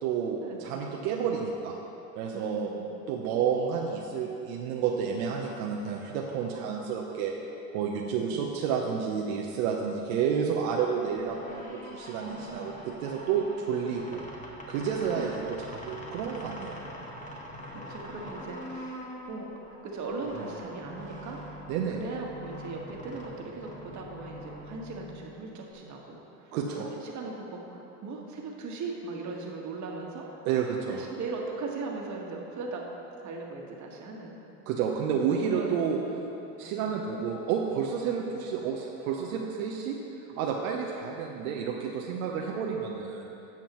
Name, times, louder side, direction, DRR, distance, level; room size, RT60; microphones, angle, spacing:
voice 1, 0.0-1.8 2.2-2.7 3.1-7.3 7.7-14.2 14.7-16.8 21.7-22.0 26.5-26.9 30.5-31.1 34.7-36.0 36.6-40.0 40.4-43.3, right 7 dB, 70° right, -1 dB, 0.9 m, -30 dB
voice 2, 2.3-2.9 7.9-8.6 12.2-12.7 15.1-15.4 17.7-19.5 19.8-21.4 21.9-30.3 30.8-32.8 33.2-34.3 35.5-36.3 36.6-37.0, right 3 dB, 40° right, -1 dB, 1.6 m, -39 dB
sound 1, 11.3-25.7, equal, 15° left, 1.6 m, -44 dB
13.0 x 7.6 x 3.1 m, 3.0 s
hypercardioid pair, 95°, 44 cm